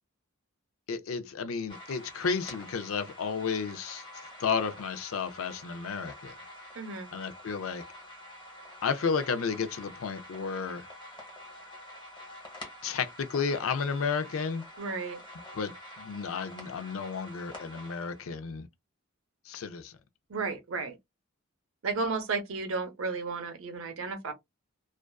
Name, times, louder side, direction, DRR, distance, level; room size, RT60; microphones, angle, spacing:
voice 1, 0.9-4.0 4.4-6.4 7.1-7.8 8.8-10.9 12.8-14.6 15.5-18.7 19.5-19.9, left 5 dB, 70° left, 0.4 m, -32 dB
sound 1, 1.7-18.2, left 1 dB, 20° left, 0.8 m, -47 dB
voice 2, 6.7-7.1 14.8-15.2 20.3-21.0 21.8-24.3, right 4 dB, 70° right, 0.6 m, -33 dB
2.4 x 2.3 x 2.2 m
head